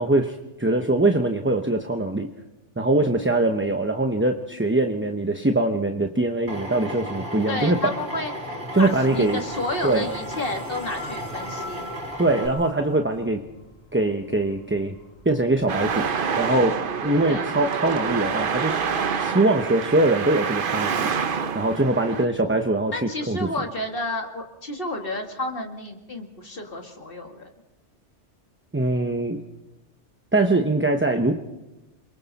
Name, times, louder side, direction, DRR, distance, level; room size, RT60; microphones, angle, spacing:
voice 1, 0.0-2.3 2.8-7.9 8.7-9.4 9.8-10.1 12.2-13.4 13.9-15.0 15.2-16.1 16.4-18.9 19.2-21.1 21.5-23.5 28.7-29.4 30.3-31.3, right 2 dB, 10° right, 5 dB, 0.8 m, -22 dB
Drill, 6.5-12.5, equal, 75° right, 3.6 m, -34 dB
voice 2, 7.5-11.9 17.3-17.5 22.9-27.5, left 2 dB, 50° left, 2 dB, 2.3 m, -31 dB
sound 1, 8.7-17.4, left 2 dB, 20° left, 2.6 m, -44 dB
Traffic noise roadway noise, 15.7-22.2, right 6 dB, 50° right, 0.9 m, -27 dB
28.0 x 23.0 x 4.2 m, 1.0 s
omnidirectional pair, 1.2 m